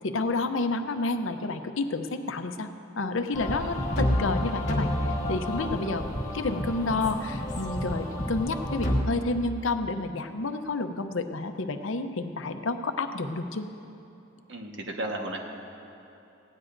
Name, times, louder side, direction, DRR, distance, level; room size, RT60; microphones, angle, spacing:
voice 1, 0.0-2.7 3.0-4.9 5.3-6.1 6.3-13.7, left 3 dB, 70° left, 7 dB, 0.7 m, -30 dB
sound 1, 3.3-9.0, left 1 dB, 40° left, 1.8 m, -29 dB
voice 2, 14.5-15.4, right 1 dB, 65° right, 1 dB, 1.4 m, -35 dB
19.0 x 16.5 x 2.6 m, 2.9 s
head